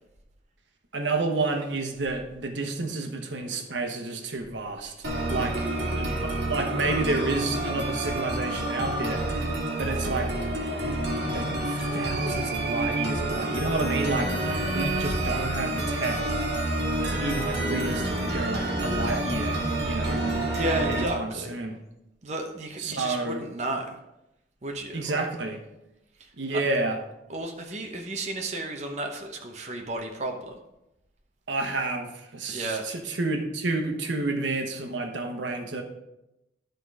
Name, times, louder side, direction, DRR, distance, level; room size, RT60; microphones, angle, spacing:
voice 1, 0.9-10.3 10.8-16.3 17.1-20.3 20.9-21.8 22.8-23.5 24.9-25.6 26.4-27.0 31.5-35.8, right 3 dB, 90° right, 4 dB, 1.0 m, -30 dB
sound 1, 5.0-21.0, right 1 dB, 70° right, 1.7 m, -28 dB
voice 2, 20.5-21.5 22.2-23.9 24.6-25.3 26.5-26.7 27.3-30.5 32.5-32.8, right 2 dB, 40° right, 2 dB, 0.8 m, -32 dB
11.5 x 3.9 x 4.8 m, 0.90 s
head